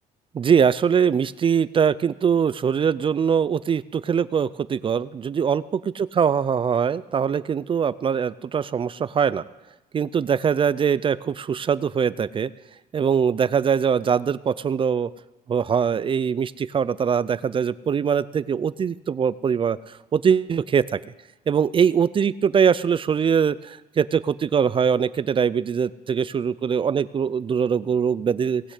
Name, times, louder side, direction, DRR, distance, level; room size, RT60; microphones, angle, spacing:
voice 1, 0.3-9.4 9.9-12.5 12.9-15.1 15.5-19.8 20.1-21.0 21.5-28.6, right 7 dB, 30° right, 18 dB, 0.4 m, -22 dB
19.0 x 6.3 x 8.2 m, 1.0 s
cardioid pair, 110°, 17 cm